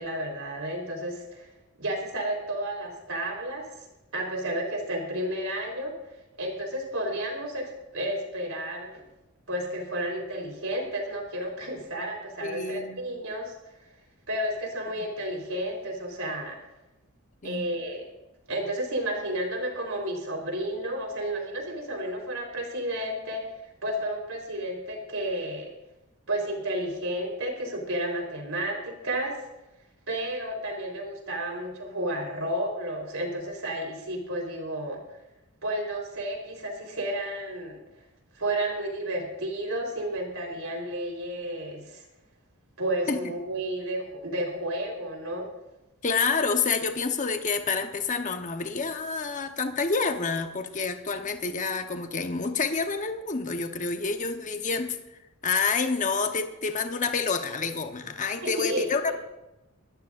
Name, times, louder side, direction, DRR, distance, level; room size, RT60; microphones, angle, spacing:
voice 1, 0.0-1.5 1.8-3.6 4.1-5.9 6.4-9.0 9.5-13.5 14.3-16.6 17.4-18.1 18.5-23.4 23.8-25.7 26.3-29.4 30.1-35.0 35.6-37.8 38.4-42.0 42.8-45.5 58.4-59.1, right 1 dB, 70° right, 1 dB, 4.0 m, -32 dB
voice 2, 12.4-13.0 17.4-17.7 43.1-43.2 46.0-55.0 55.4-59.1, left 4 dB, 35° left, 7 dB, 1.0 m, -28 dB
22.0 x 13.5 x 2.6 m, 0.97 s
head